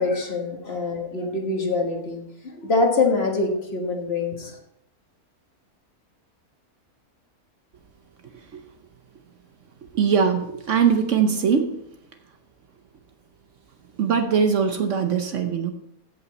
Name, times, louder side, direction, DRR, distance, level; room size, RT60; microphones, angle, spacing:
voice 1, 0.0-4.6, left 3 dB, 45° left, 2 dB, 1.6 m, -24 dB
voice 2, 9.9-11.7 14.0-15.7, right 6 dB, 60° right, 7 dB, 1.0 m, -21 dB
14.5 x 5.7 x 4.1 m, 0.79 s
omnidirectional pair, 1.6 m